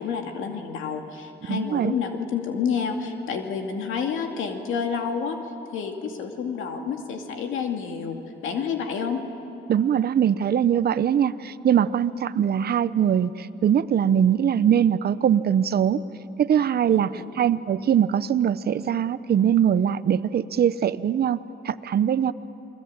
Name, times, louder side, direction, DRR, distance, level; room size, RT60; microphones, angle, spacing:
voice 1, 0.0-5.4 5.7-9.2 16.9-17.2, left 6 dB, 85° left, 4 dB, 2.4 m, -29 dB
voice 2, 1.5-1.9 9.7-16.0 16.4-17.1 17.4-22.3, right 9 dB, 55° right, 14 dB, 0.9 m, -22 dB
29.0 x 21.5 x 8.8 m, 3.0 s
cardioid pair, 90°, 20 cm